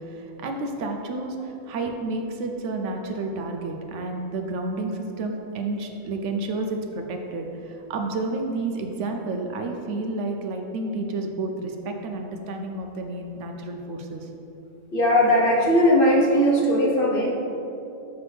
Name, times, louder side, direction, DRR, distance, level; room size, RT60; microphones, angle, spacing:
voice 1, 0.0-14.3, right 2 dB, 70° right, 3 dB, 0.9 m, -30 dB
voice 2, 14.9-17.3, equal, 50° left, -2 dB, 0.9 m, -19 dB
7.0 x 5.8 x 3.3 m, 2.9 s
omnidirectional pair, 1.4 m